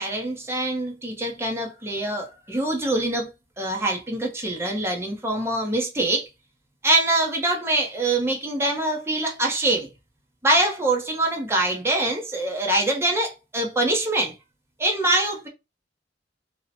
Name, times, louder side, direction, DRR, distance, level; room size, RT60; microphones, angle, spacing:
voice 1, 0.0-3.3 3.6-6.3 6.8-9.9 10.4-14.3 14.8-15.5, right 2 dB, 15° right, 0.8 m, -24 dB
2.8 x 2.1 x 4.1 m
head